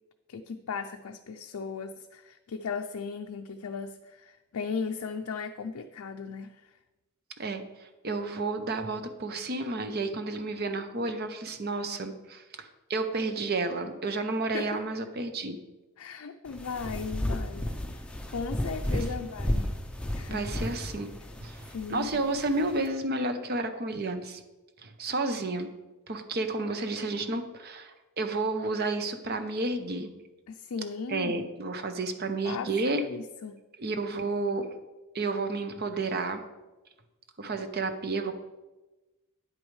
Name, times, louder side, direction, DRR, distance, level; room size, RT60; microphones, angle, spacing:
voice 1, 0.3-6.7 14.5-14.8 16.0-19.7 20.1-20.5 21.7-22.2 30.5-31.5 32.4-33.6, left 5 dB, 75° left, 5 dB, 0.4 m, -37 dB
voice 2, 7.4-15.6 18.9-19.0 20.3-21.1 21.4-24.4 24.8-25.7 26.1-30.1 31.1-33.0 33.8-34.7 35.1-36.4 37.4-38.3, right 2 dB, 45° right, 8 dB, 0.7 m, -31 dB
sound 1, 16.5-22.9, left 1 dB, 5° left, 0.5 m, -33 dB
9.7 x 8.4 x 3.2 m, 1.1 s
head